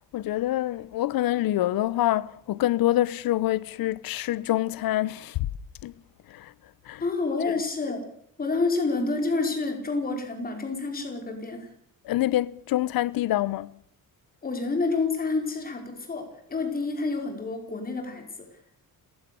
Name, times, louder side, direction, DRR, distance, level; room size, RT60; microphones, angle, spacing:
voice 1, 0.1-5.5 5.8-5.9 6.3-6.5 6.9-7.0 12.0-13.7, left 14 dB, 85° left, 0.9 m, -26 dB
voice 2, 7.0-8.1 8.4-11.7 14.4-18.5, left 3 dB, 25° left, 4.8 m, -28 dB
29.5 x 15.0 x 6.9 m
cardioid pair, 170°, 35 cm